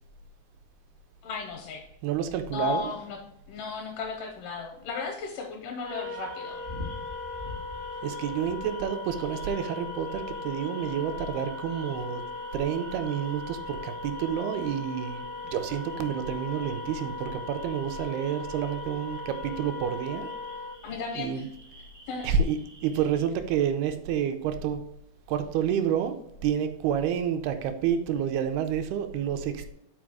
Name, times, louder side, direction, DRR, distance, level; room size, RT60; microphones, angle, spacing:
voice 1, 1.2-1.8 2.5-3.2 3.5-6.6 20.8-21.4 22.1-22.3, left 5 dB, 80° left, 3 dB, 2.0 m, -35 dB
voice 2, 2.0-2.9 8.0-12.2 12.5-20.3 21.2-21.4 22.2-22.6 22.8-24.8 25.3-26.2 26.4-29.7, right 8 dB, 85° right, 7 dB, 2.5 m, -29 dB
Wind instrument woodwind instrument, 5.8-20.8, left 3 dB, 20° left, 0.4 m, -38 dB
sound 1, 5.8-23.2, left 1 dB, 55° right, 0.7 m, -49 dB
6.3 x 4.1 x 4.7 m, 0.79 s
omnidirectional pair, 4.5 m